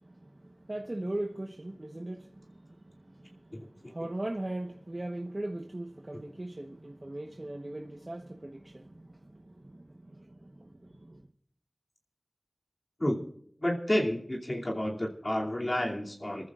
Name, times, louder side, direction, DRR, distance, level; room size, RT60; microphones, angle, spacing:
voice 1, 0.0-11.3, right 1 dB, 45° right, 1.1 m, -40 dB
voice 2, 3.5-3.9 13.0-13.2 13.6-16.5, left 1 dB, 40° left, 2.7 m, -30 dB
28.0 x 14.0 x 2.5 m
wide cardioid pair, 45°, 0 cm